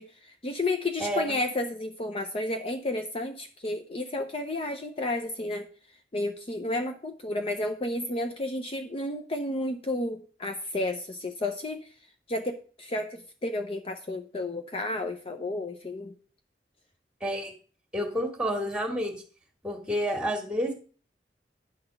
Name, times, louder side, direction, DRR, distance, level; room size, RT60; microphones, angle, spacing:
voice 1, 0.0-5.7 6.1-11.9 12.3-16.1, left 2 dB, 35° left, 6 dB, 0.6 m, -32 dB
voice 2, 1.0-1.4 17.2-17.5 17.9-19.1 19.6-20.7, equal, 5° right, 3 dB, 1.7 m, -29 dB
9.7 x 4.1 x 6.6 m, 0.41 s
head